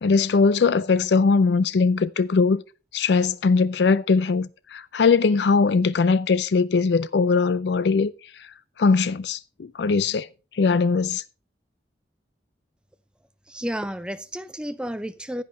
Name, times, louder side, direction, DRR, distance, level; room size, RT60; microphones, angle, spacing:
voice 1, 0.0-2.6 2.9-8.1 8.4-8.5 8.8-10.3 10.5-11.2, left 4 dB, 80° left, 0.4 m, -20 dB
voice 2, 13.5-15.4, equal, 5° right, 0.5 m, -31 dB
10.5 x 8.7 x 4.1 m
head